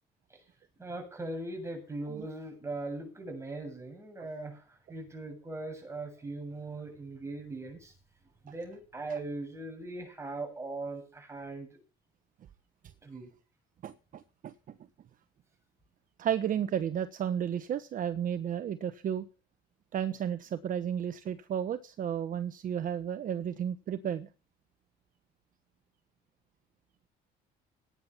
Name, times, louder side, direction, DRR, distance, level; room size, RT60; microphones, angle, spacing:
voice 1, 0.8-7.9 8.4-11.8 13.0-13.3, right 2 dB, 15° right, 4 dB, 7.6 m, -40 dB
voice 2, 13.8-14.5 16.2-19.2 19.9-24.3, right 9 dB, 50° right, 11 dB, 1.2 m, -33 dB
17.0 x 10.0 x 5.8 m, 0.34 s
cardioid pair, 110°, 17 cm